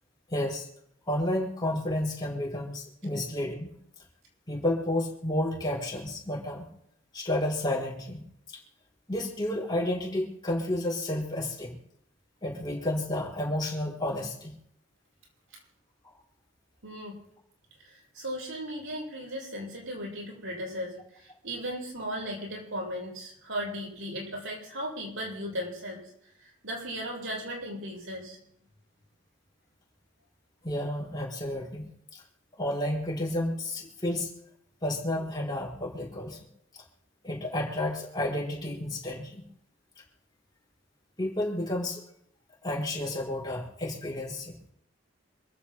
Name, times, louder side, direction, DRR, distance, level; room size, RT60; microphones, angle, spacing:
voice 1, 0.3-0.7 1.0-3.7 4.5-6.7 7.1-8.6 9.1-11.8 12.4-14.5 30.6-32.2 32.6-34.3 34.8-36.4 36.7-36.8 37.2-39.5 41.2-42.0 42.6-44.5, left 1 dB, 20° left, -2 dB, 4.5 m, -31 dB
voice 2, 16.8-17.2 17.8-26.0 26.4-28.4, equal, 85° right, -3 dB, 7.3 m, -36 dB
27.0 x 15.5 x 2.2 m, 0.74 s
head